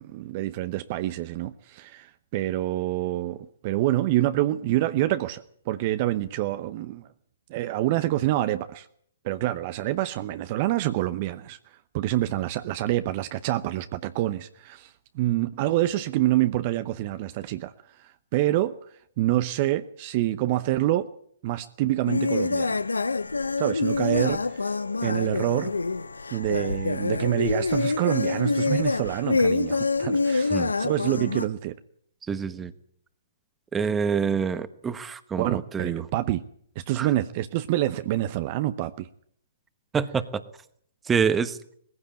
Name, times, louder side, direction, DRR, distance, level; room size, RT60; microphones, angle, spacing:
voice 1, 0.0-3.4 3.6-7.1 7.5-8.9 9.2-11.6 11.9-17.7 18.0-18.8 19.2-21.1 21.4-22.8 23.6-24.7 25.0-25.7 26.3-31.8 35.4-36.4 36.9-39.1, right 15 dB, 40° right, 0.8 m, -27 dB
sound 1, 22.1-31.5, left 3 dB, 85° left, 0.7 m, -26 dB
voice 2, 32.3-32.7 33.7-36.1 37.0-37.1 39.9-40.4 41.0-41.6, right 6 dB, 15° right, 1.2 m, -26 dB
19.5 x 15.5 x 8.9 m
figure-of-eight pair, 125°, 0 cm